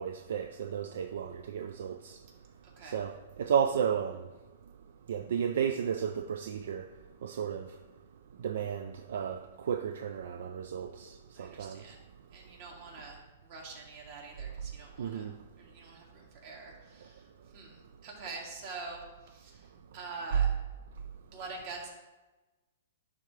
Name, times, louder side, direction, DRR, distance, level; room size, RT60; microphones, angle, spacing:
voice 1, 0.0-2.2 2.8-4.2 5.1-6.9 7.2-7.7 8.4-9.4 9.6-11.8 15.0-15.3, right 8 dB, 70° right, 0.4 m, -33 dB
voice 2, 11.3-12.0 12.3-15.3 15.6-20.5 21.3-21.9, right 3 dB, 50° right, 2.1 m, -45 dB
10.5 x 3.7 x 3.2 m
hypercardioid pair, 140°, 0 cm